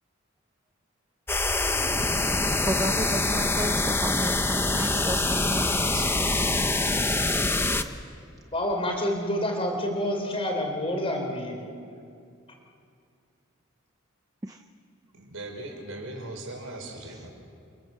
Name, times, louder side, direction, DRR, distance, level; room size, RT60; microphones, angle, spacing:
sound 1, 1.3-7.8, left 2 dB, 10° left, 0.9 m, -25 dB
voice 1, 2.6-6.1 14.4-14.6 17.1-17.2, right 1 dB, 15° right, 7 dB, 0.7 m, -33 dB
voice 2, 8.5-11.7, left 1 dB, 25° left, 2 dB, 4.3 m, -28 dB
voice 3, 15.1-17.3, right 2 dB, 75° right, 2 dB, 5.9 m, -39 dB
29.5 x 24.5 x 7.9 m, 2.4 s
head